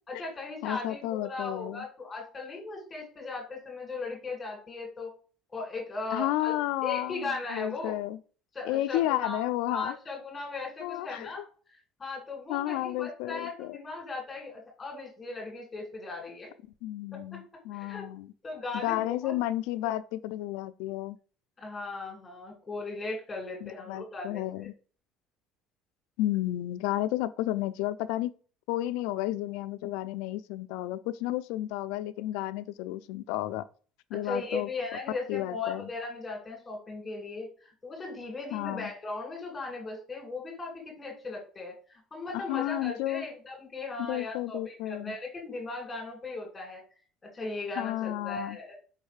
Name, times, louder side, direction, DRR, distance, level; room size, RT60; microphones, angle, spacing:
voice 1, 0.1-5.1 5.5-6.6 6.8-8.0 8.5-9.4 9.7-11.5 12.0-16.5 17.3-17.4 17.7-18.1 18.4-19.3 21.6-24.7 34.2-46.8 47.3-48.7, left 3 dB, 20° left, 2.1 m, -38 dB
voice 2, 0.6-1.8 6.1-8.2 8.6-10.0 10.8-11.5 12.5-13.8 16.8-18.3 18.7-21.2 23.6-24.7 26.2-28.3 28.7-33.7 34.1-34.7 35.3-35.9 38.5-38.9 42.3-43.3 44.0-45.2 47.8-48.6, left 15 dB, 85° left, 0.3 m, -32 dB
5.2 x 3.1 x 3.2 m
cardioid pair, 130°, 0 cm